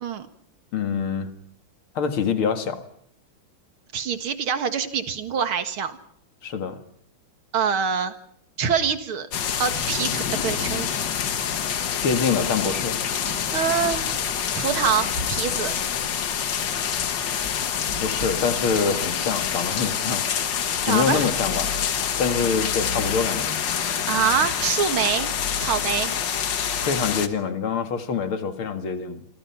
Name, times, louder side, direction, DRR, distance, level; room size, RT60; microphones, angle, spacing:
voice 1, 0.7-1.3 1.9-2.8 6.4-6.8 12.0-13.0 18.0-20.3 20.9-21.7 22.2-23.5 26.8-29.3, left 6 dB, 80° left, 8 dB, 2.8 m, -25 dB
voice 2, 3.9-6.0 7.5-8.2 8.6-9.3 9.6-10.9 13.5-14.2 14.6-15.7 20.8-21.3 24.1-25.3 25.6-26.1, right 7 dB, 80° right, 10 dB, 2.6 m, -25 dB
sound 1, 9.3-27.3, left 8 dB, 60° left, 1.9 m, -26 dB
sound 2, 12.6-19.7, right 1 dB, 50° right, 8.8 m, -41 dB
28.0 x 25.0 x 5.8 m, 0.66 s
omnidirectional pair, 2.3 m